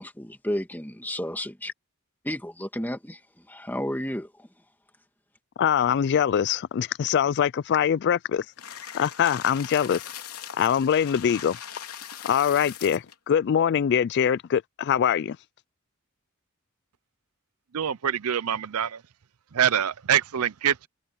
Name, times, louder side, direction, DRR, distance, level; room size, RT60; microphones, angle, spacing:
voice 1, 0.0-1.7 2.2-4.5, left 1 dB, 10° left, 2.2 m, -32 dB
voice 2, 5.6-8.5 8.9-10.0 10.5-11.6 12.2-15.4, left 8 dB, 50° left, 0.3 m, -23 dB
sound 1, 8.6-13.1, left 9 dB, 85° left, 3.6 m, -40 dB
voice 3, 17.7-19.0 19.5-20.9, right 9 dB, 85° right, 0.6 m, -25 dB
head